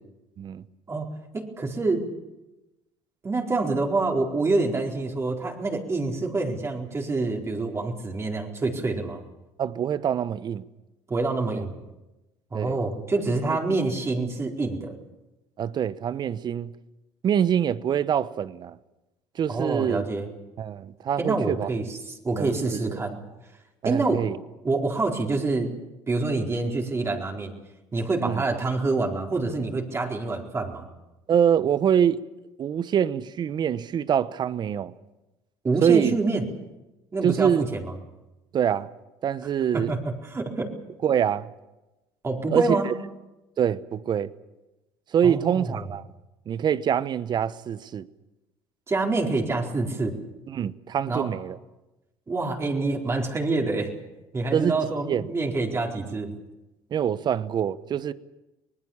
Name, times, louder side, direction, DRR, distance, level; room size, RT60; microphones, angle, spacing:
voice 1, 0.9-2.1 3.2-9.2 11.1-11.7 12.5-15.0 19.5-20.3 21.2-23.2 23.8-24.2 24.6-25.7 26.1-27.5 27.9-30.9 35.6-36.4 37.1-37.9 39.7-40.7 42.2-42.9 45.2-45.8 48.9-50.1 51.0-51.3 52.3-53.9 54.3-56.3, right 3 dB, 25° right, 4.3 m, -26 dB
voice 2, 9.6-10.6 11.5-11.6 12.5-12.8 13.5-13.6 15.6-16.7 17.2-18.8 19.3-20.0 20.6-21.7 22.3-23.0 23.8-24.4 28.2-28.4 31.3-32.2 32.6-34.9 35.8-36.1 37.2-37.7 38.5-38.9 39.2-39.9 41.0-41.5 42.5-42.9 43.6-44.3 45.1-46.1 46.5-48.1 50.5-51.6 54.5-54.8 55.1-55.3 56.9-58.1, right 8 dB, 45° right, 1.0 m, -25 dB
25.0 x 19.5 x 7.3 m
supercardioid pair, 85°, 10 cm